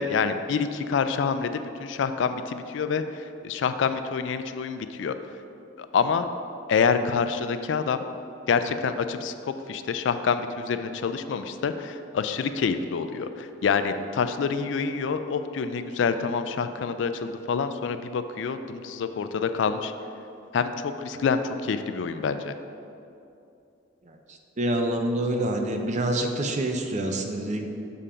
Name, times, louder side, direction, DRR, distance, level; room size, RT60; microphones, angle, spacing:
voice 1, 0.0-5.1 5.8-6.3 6.7-8.0 8.5-19.9 20.5-22.5, left 5 dB, 70° left, 10 dB, 0.3 m, -27 dB
voice 2, 24.1-27.7, right 1 dB, 40° right, 4 dB, 0.5 m, -27 dB
6.8 x 3.7 x 5.5 m, 2.7 s
head